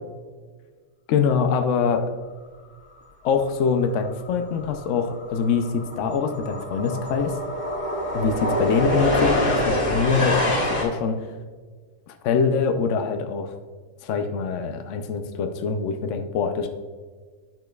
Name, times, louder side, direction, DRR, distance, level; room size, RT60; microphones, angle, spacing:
voice 1, 1.1-2.1 3.2-7.4 8.1-11.3 12.1-13.5 14.0-16.7, left 5 dB, 75° left, 6 dB, 0.7 m, -24 dB
sound 1, 4.0-4.3 4.5-10.8, left 1 dB, 30° left, 1.4 m, -26 dB
10.5 x 5.1 x 2.3 m, 1.5 s
omnidirectional pair, 1.8 m